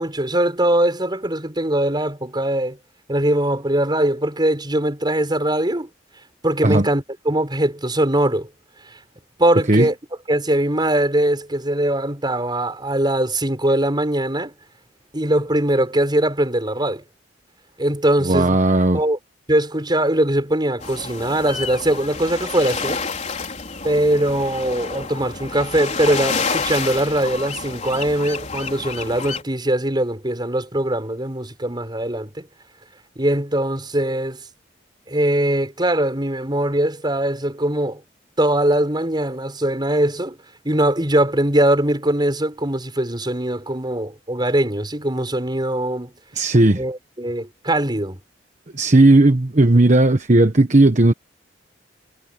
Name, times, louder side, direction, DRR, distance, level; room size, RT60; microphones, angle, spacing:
voice 1, 0.0-2.8 3.1-5.9 6.4-8.5 9.4-9.9 10.3-14.5 15.1-17.0 17.8-18.6 18.9-19.2 19.5-23.0 23.8-32.5 33.2-34.4 35.1-38.0 38.4-40.4 40.6-46.1 46.8-48.2, right 1 dB, 25° right, 5.9 m, -21 dB
voice 2, 18.2-19.0 46.3-46.8 48.7-51.1, right 2 dB, 40° right, 1.1 m, -15 dB
sound 1, 20.8-29.4, left 4 dB, 40° left, 4.1 m, -29 dB
head